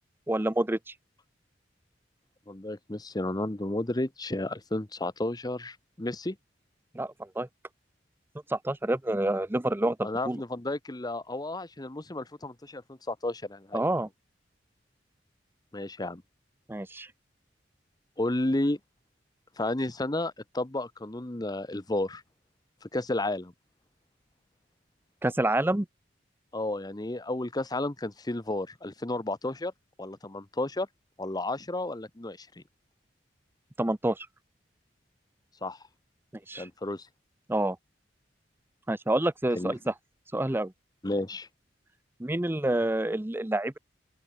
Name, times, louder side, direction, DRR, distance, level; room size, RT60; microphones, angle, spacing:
voice 1, 0.3-0.8 6.9-7.5 8.5-10.4 13.7-14.1 16.7-17.1 25.2-25.9 33.8-34.3 36.5-36.7 37.5-37.8 38.9-39.9 40.3-40.7 42.2-43.7, right 1 dB, 10° right, 0.6 m, -28 dB
voice 2, 2.5-6.4 10.0-13.9 15.7-16.2 18.2-18.8 19.6-22.2 22.8-23.5 26.5-29.7 30.0-30.9 31.2-32.5 35.6-35.8 36.5-37.1 39.6-39.7 41.0-41.5, left 2 dB, 20° left, 1.0 m, -32 dB
open air
head